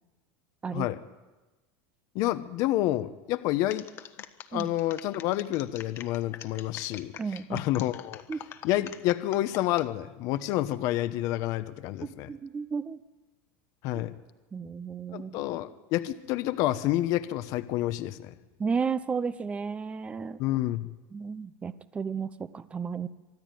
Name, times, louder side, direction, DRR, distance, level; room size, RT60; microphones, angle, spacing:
voice 1, 2.1-3.9 4.5-7.1 7.5-8.2 8.6-12.3 13.8-14.1 15.1-18.3 20.4-20.9, left 15 dB, 55° left, 12 dB, 1.0 m, -29 dB
sound 1, 3.7-9.9 10.3-10.8, left 10 dB, 40° left, 1.3 m, -44 dB
voice 2, 7.2-7.6 8.3-8.4 12.0-13.0 14.5-15.4 18.6-20.4 21.1-23.1, right 5 dB, 15° right, 14 dB, 0.7 m, -33 dB
24.5 x 12.0 x 9.3 m, 1.1 s
supercardioid pair, 135°, 7 cm